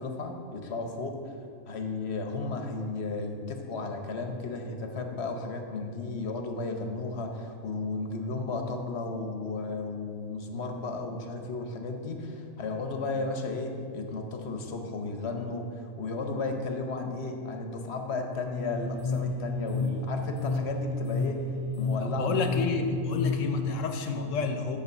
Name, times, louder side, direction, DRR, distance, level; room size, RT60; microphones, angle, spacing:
voice 1, 0.0-1.3 1.6-21.5 21.8-22.4, left 3 dB, 60° left, 4 dB, 1.1 m, -34 dB
sound 1, 18.5-23.7, left 3 dB, 35° left, 0.6 m, -31 dB
voice 2, 22.0-24.8, left 4 dB, 75° left, 6 dB, 1.1 m, -30 dB
6.9 x 5.8 x 7.2 m, 2.3 s
omnidirectional pair, 1.3 m